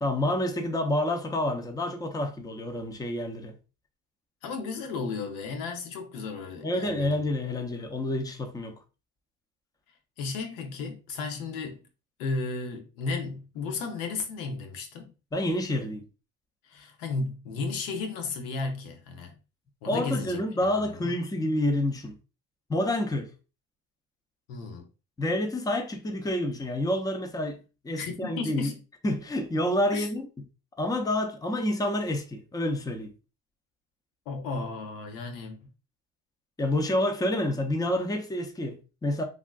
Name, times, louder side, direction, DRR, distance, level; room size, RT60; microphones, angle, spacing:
voice 1, 0.0-3.5 6.6-8.7 15.3-16.1 19.8-22.2 22.7-23.3 25.2-27.6 27.8-28.7 29.0-30.3 30.8-33.1 36.6-39.2, left 1 dB, 10° left, 0.6 m, -28 dB
voice 2, 4.4-7.2 10.2-11.8 12.2-15.1 16.6-19.3 19.8-20.4 20.8-21.1 24.5-24.9 28.0-28.7 29.9-30.1 34.3-35.7, left 4 dB, 85° left, 0.8 m, -34 dB
3.5 x 2.5 x 2.3 m
supercardioid pair, 90°, 34 cm